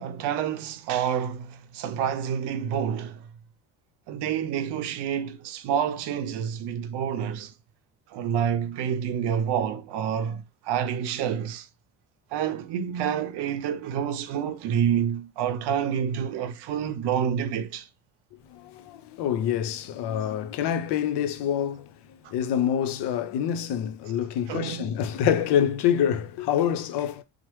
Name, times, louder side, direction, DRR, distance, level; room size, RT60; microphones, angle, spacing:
voice 1, 0.0-3.3 4.1-7.5 8.1-11.7 12.3-17.9 24.5-24.9, right 8 dB, 65° right, 0.6 m, -28 dB
voice 2, 18.5-21.9 22.3-27.2, left 9 dB, 65° left, 0.6 m, -26 dB
3.0 x 2.0 x 3.0 m
supercardioid pair, 75°, 44 cm